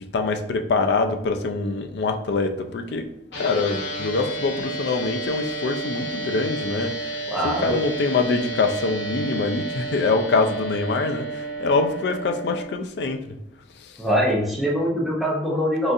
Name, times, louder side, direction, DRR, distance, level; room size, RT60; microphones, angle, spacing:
voice 1, 0.1-3.0 3.4-6.9 7.4-13.4 13.8-13.9, left 3 dB, 70° left, 6 dB, 0.4 m, -24 dB
sound 1, 3.3-12.6, right 2 dB, 85° left, 0.8 m, -31 dB
voice 2, 7.3-7.7 14.0-15.9, equal, ahead, -4 dB, 0.7 m, -23 dB
3.9 x 2.4 x 2.6 m, 0.83 s
head